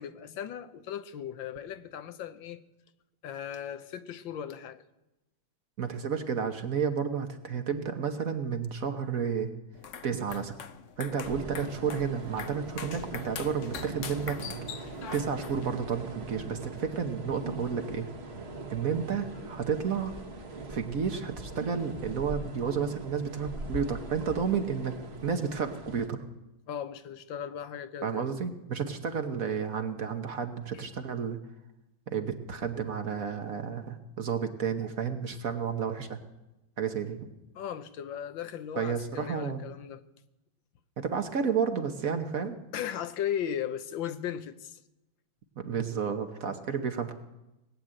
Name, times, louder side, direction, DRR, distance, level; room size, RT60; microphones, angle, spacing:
voice 1, 0.0-2.6 3.2-4.8 26.7-28.3 30.7-30.8 37.5-40.0 42.7-44.8, left 9 dB, 80° left, 1.6 m, -37 dB
voice 2, 5.8-9.5 10.0-10.5 11.0-14.4 15.1-18.1 18.7-20.1 20.7-26.2 28.0-31.4 32.1-36.2 36.8-37.2 38.8-39.7 41.0-42.6 45.6-47.1, right 6 dB, 50° right, 1.4 m, -31 dB
sound 1, 9.7-15.7, left 7 dB, 55° left, 0.9 m, -43 dB
sound 2, 11.2-26.1, right 3 dB, 35° right, 1.5 m, -41 dB
19.5 x 8.0 x 8.9 m
omnidirectional pair, 2.1 m